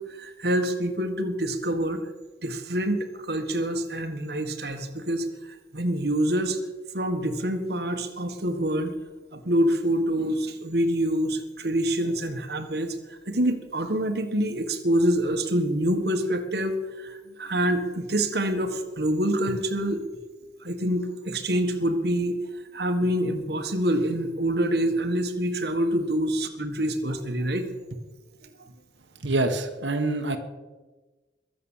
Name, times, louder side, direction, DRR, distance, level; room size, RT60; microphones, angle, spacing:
voice 1, 0.0-2.0 2.4-6.6 6.9-8.9 9.3-13.0 13.3-20.0 20.6-22.4 22.7-27.7, right 1 dB, 60° right, 6 dB, 1.5 m, -26 dB
voice 2, 29.2-30.4, right 2 dB, 80° right, 5 dB, 1.4 m, -26 dB
22.0 x 7.9 x 7.4 m, 1.2 s
head